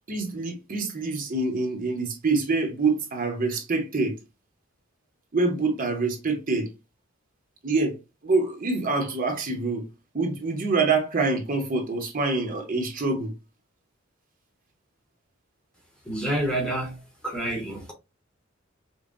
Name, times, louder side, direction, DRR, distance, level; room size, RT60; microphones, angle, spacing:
voice 1, 0.1-4.2 5.3-6.7 7.6-8.0 8.2-9.9 10.1-13.3, right 3 dB, 45° right, 0.9 m, -26 dB
voice 2, 16.0-17.9, right 1 dB, 5° left, 1.0 m, -28 dB
5.3 x 2.2 x 2.5 m
head